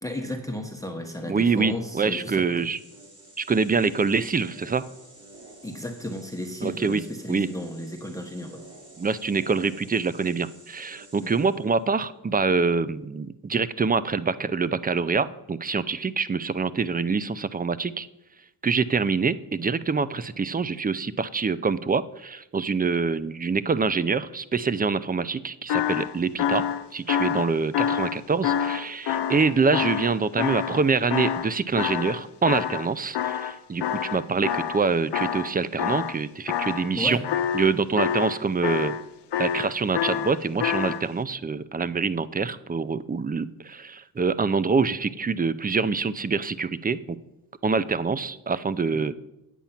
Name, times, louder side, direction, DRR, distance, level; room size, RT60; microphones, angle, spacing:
voice 1, 0.0-2.7 5.6-8.6 11.2-11.3 37.0-37.3 48.9-49.1, left 1 dB, 5° left, 4 dB, 1.1 m, -34 dB
voice 2, 1.3-2.8 3.4-4.8 6.6-7.0 7.3-7.5 9.0-18.1 18.6-26.6 26.9-37.2 37.5-38.9 39.4-47.2 47.6-49.1, right 4 dB, 20° right, 17 dB, 0.5 m, -25 dB
sound 1, 2.3-11.8, right 2 dB, 40° right, 4.4 m, -51 dB
sound 2, 25.7-31.5 31.8-34.9 35.1-36.2 36.5-36.9 37.2-39.0 39.3-41.0, left 9 dB, 65° left, 0.7 m, -27 dB
9.0 x 8.4 x 5.8 m, 0.91 s
cardioid pair, 70°, 44 cm